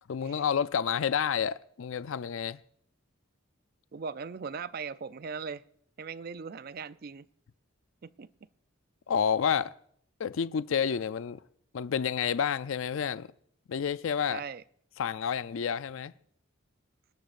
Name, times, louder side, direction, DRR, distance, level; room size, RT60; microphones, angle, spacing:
voice 1, 0.1-2.6 9.1-9.7 10.2-11.4 11.7-13.3 13.7-14.4 15.0-16.1, left 7 dB, 70° left, 0.4 m, -29 dB
voice 2, 3.9-5.6 6.0-7.3 8.0-8.3 14.3-14.6, right 5 dB, 45° right, 0.4 m, -39 dB
28.0 x 11.5 x 2.5 m
head